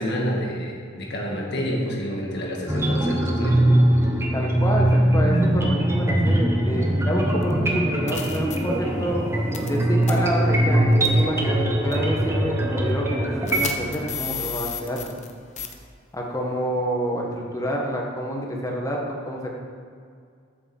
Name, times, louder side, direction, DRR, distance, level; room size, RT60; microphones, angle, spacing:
voice 1, 0.0-3.7, equal, 55° left, 0 dB, 1.9 m, -28 dB
sound 1, 2.7-13.6, right 1 dB, 15° right, 1.1 m, -21 dB
voice 2, 4.3-9.2 9.6-15.1 16.1-19.5, equal, 15° left, -1 dB, 1.5 m, -28 dB
sound 2, 7.4-7.5 8.1-8.6 9.5-9.8 10.0-10.1 11.0-11.2 11.9-12.0 13.5-15.3 15.6-15.7, left 7 dB, 35° left, 0.9 m, -32 dB
8.9 x 7.0 x 7.2 m, 2.2 s
head